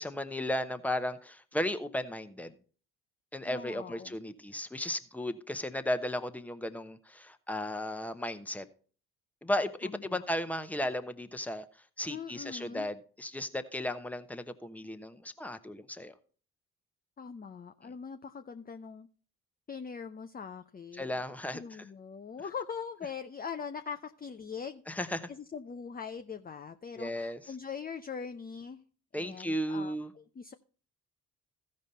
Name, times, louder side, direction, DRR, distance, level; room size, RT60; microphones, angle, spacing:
voice 1, 0.0-2.5 3.3-8.6 9.4-11.6 12.0-16.1 20.9-21.9 24.9-25.3 27.0-27.4 29.1-30.1, left 1 dB, 5° left, 1.0 m, -35 dB
voice 2, 3.5-4.2 9.8-10.2 12.1-12.9 17.2-19.1 19.7-21.1 21.5-28.8 29.1-30.5, left 6 dB, 20° left, 0.6 m, -42 dB
15.5 x 5.3 x 4.1 m
hypercardioid pair, 45°, 42 cm